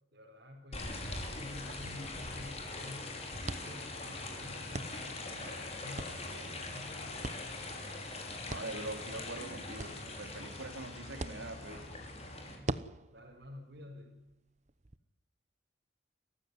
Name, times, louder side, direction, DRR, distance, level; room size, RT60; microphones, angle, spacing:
voice 1, 0.1-1.0 1.3-7.1 13.1-14.2, left 2 dB, 55° right, -4 dB, 5.0 m, -50 dB
sound 1, 0.7-12.6, left 2 dB, 30° left, 5.8 m, -42 dB
sound 2, 3.4-15.0, right 2 dB, 35° right, 0.9 m, -46 dB
voice 2, 8.5-11.8, right 2 dB, 75° right, 6 dB, 3.7 m, -43 dB
29.5 x 15.5 x 9.9 m, 1.0 s
head